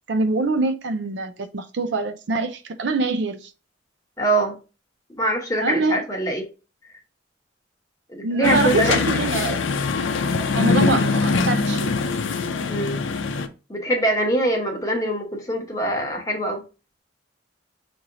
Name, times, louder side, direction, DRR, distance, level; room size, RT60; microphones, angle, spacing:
voice 1, 0.1-3.5 5.6-6.0 8.2-9.6 10.5-12.0, right 3 dB, 60° right, 0.5 m, -24 dB
voice 2, 4.2-4.6 5.2-6.4 8.1-8.9 12.7-13.0 13.7-16.6, right 1 dB, 15° left, 1.0 m, -23 dB
sound 1, 8.4-13.5, left 4 dB, 75° left, 0.5 m, -22 dB
6.1 x 2.6 x 2.9 m
head